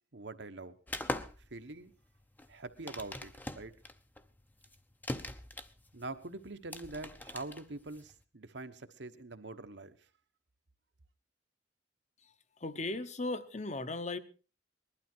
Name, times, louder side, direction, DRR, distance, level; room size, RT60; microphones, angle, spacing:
voice 1, 0.1-0.8 1.1-1.9 2.5-3.7 5.9-10.1, right 2 dB, 70° right, 9 dB, 1.2 m, -45 dB
sound 1, 0.9-8.2, left 1 dB, 10° left, 0.7 m, -42 dB
voice 2, 12.2-14.2, left 2 dB, 40° left, 12 dB, 1.0 m, -37 dB
19.5 x 12.0 x 4.5 m, 0.35 s
head